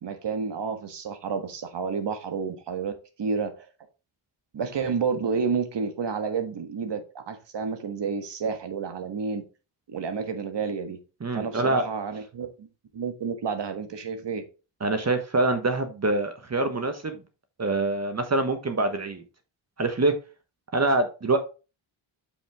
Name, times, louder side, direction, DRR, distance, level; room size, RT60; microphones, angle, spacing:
voice 1, 0.0-2.9 3.2-3.5 4.5-9.4 9.9-11.0 11.3-12.7 12.9-14.4, right 5 dB, 60° right, 1.6 m, -30 dB
voice 2, 11.2-11.8 14.8-17.1 17.6-19.2 19.8-20.1 20.7-21.4, right 2 dB, 35° right, 1.3 m, -25 dB
6.9 x 5.8 x 3.5 m
cardioid pair, 70°, 47 cm